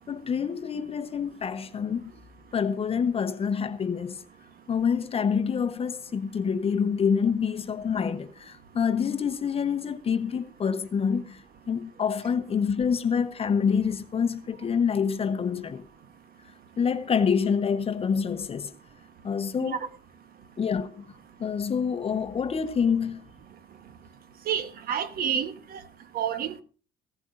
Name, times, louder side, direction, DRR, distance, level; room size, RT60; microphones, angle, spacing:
voice 1, 0.1-2.1 2.5-4.2 4.7-15.9 16.8-18.7 19.2-19.8 20.6-21.0 21.4-23.2, left 6 dB, 35° left, 1.0 m, -27 dB
voice 2, 24.5-25.8 26.1-26.6, right 8 dB, 60° right, 1.1 m, -29 dB
16.5 x 14.5 x 2.6 m
cardioid pair, 110°, 17 cm